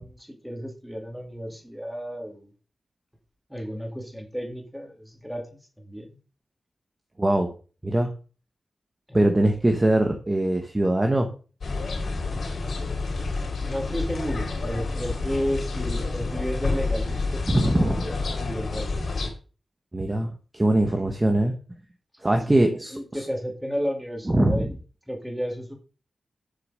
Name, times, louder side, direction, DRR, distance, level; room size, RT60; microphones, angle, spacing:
voice 1, 0.0-2.5 3.5-6.2 9.1-9.4 13.6-18.1 18.4-19.1 22.2-24.8 25.1-25.8, equal, ahead, 2 dB, 2.4 m, -33 dB
voice 2, 7.2-7.5 7.8-8.1 9.1-11.3 17.5-18.0 19.9-21.5 22.2-23.0 24.3-24.7, right 1 dB, 15° right, 4 dB, 1.1 m, -22 dB
sound 1, 11.6-19.3, left 3 dB, 70° left, 3.5 m, -29 dB
7.8 x 6.7 x 6.4 m, 0.37 s
wide cardioid pair, 165°, 0 cm